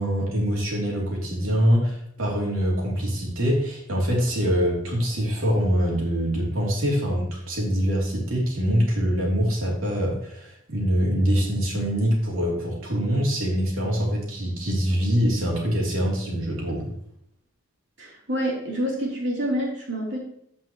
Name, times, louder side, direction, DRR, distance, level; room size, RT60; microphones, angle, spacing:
voice 1, 0.0-16.9, equal, 80° right, -3 dB, 3.0 m, -24 dB
voice 2, 18.0-20.2, equal, 55° right, -3 dB, 3.4 m, -27 dB
15.0 x 5.5 x 3.0 m, 0.71 s
head